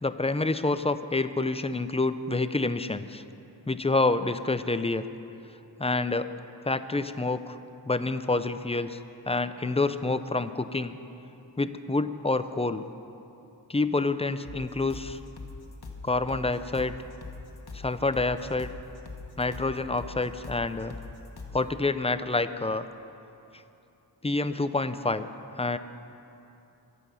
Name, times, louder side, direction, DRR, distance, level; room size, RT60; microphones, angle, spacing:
voice 1, 0.0-3.2 3.7-5.1 5.8-6.3 6.6-7.6 7.9-9.0 9.3-11.0 11.6-12.8 13.7-15.2 16.0-16.9 17.7-18.7 19.4-20.9 21.5-22.8 24.2-25.3 25.6-25.8, left 3 dB, 15° left, 12 dB, 0.4 m, -27 dB
sound 1, 14.4-21.7, left 3 dB, 55° left, 1.4 m, -42 dB
23.0 x 8.2 x 5.6 m, 2.8 s
wide cardioid pair, 90°, 44 cm